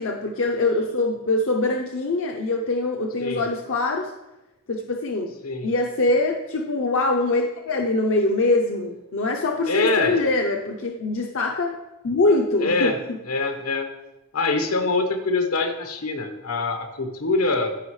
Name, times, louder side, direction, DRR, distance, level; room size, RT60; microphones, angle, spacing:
voice 1, 0.0-4.1 4.7-5.3 5.6-11.8 12.0-12.9, left 2 dB, 65° left, 1 dB, 0.6 m, -23 dB
voice 2, 9.7-10.2 12.6-13.0 13.3-13.9 14.3-17.7, left 3 dB, 90° left, 5 dB, 1.1 m, -24 dB
15.0 x 5.4 x 3.2 m, 0.99 s
head